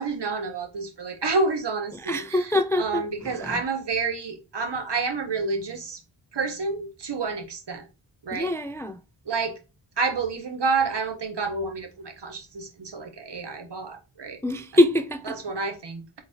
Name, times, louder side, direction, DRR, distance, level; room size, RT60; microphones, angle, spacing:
voice 1, 0.0-2.4 2.8-6.0 6.3-7.9 8.2-8.5 9.3-9.6 10.0-14.4 15.4-16.2, right 4 dB, 60° right, 1.5 m, -29 dB
voice 2, 1.9-3.6 8.3-9.0 14.4-15.4, left 1 dB, 5° left, 0.3 m, -24 dB
4.2 x 3.9 x 2.8 m
cardioid pair, 55°, 47 cm